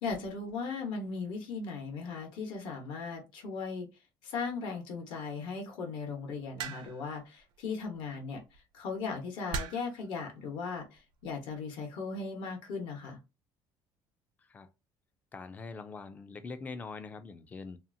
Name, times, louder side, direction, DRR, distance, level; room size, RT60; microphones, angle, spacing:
voice 1, 0.0-3.9 4.2-8.4 8.7-13.2, left 4 dB, 70° left, 1.1 m, -37 dB
sound 1, 6.6-7.1 8.3-8.6 9.5-10.0 11.0-11.3, right 5 dB, 60° right, 0.5 m, -38 dB
voice 2, 14.4-14.7 15.3-17.8, left 4 dB, 20° left, 0.3 m, -43 dB
2.7 x 2.4 x 2.6 m
cardioid pair, 160°, 9 cm